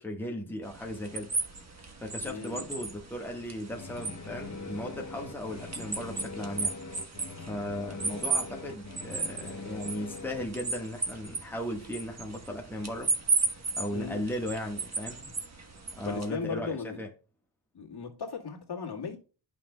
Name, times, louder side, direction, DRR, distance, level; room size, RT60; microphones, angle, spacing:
voice 1, 0.0-1.3 2.0-6.7 7.4-13.1 13.8-15.2 16.0-17.1, equal, 5° left, 1.4 m, -36 dB
sound 1, 0.6-16.3, right 4 dB, 35° right, 1.3 m, -35 dB
voice 2, 2.2-2.7 13.9-14.3 15.2-15.3 16.0-17.0 17.7-19.2, left 6 dB, 55° left, 2.1 m, -37 dB
Drive on lawnmower reverse more robotic, 3.7-10.5, left 3 dB, 35° left, 0.8 m, -42 dB
11.5 x 5.8 x 2.3 m
wide cardioid pair, 100°, 48 cm